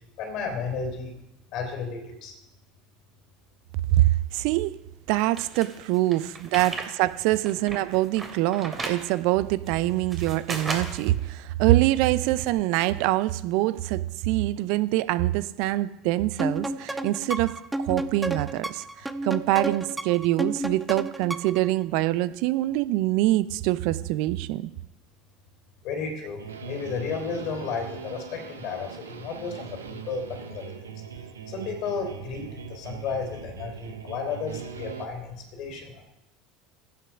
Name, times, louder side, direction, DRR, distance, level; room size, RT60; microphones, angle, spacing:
voice 1, 0.2-1.1 1.5-2.3 25.8-30.9 31.5-36.0, left 5 dB, 55° left, 4 dB, 3.5 m, -33 dB
voice 2, 3.9-4.8 5.1-18.8 19.2-24.7, right 16 dB, 60° right, 16 dB, 0.5 m, -24 dB
sound 1, 5.3-6.9 7.3-9.0 9.7-11.1, right 3 dB, 25° right, 2.7 m, -35 dB
sound 2, 16.4-21.7, right 2 dB, 10° right, 0.8 m, -31 dB
sound 3, 26.4-35.1, right 7 dB, 80° right, 0.9 m, -41 dB
16.0 x 6.0 x 5.8 m, 0.93 s
figure-of-eight pair, 70°, 0 cm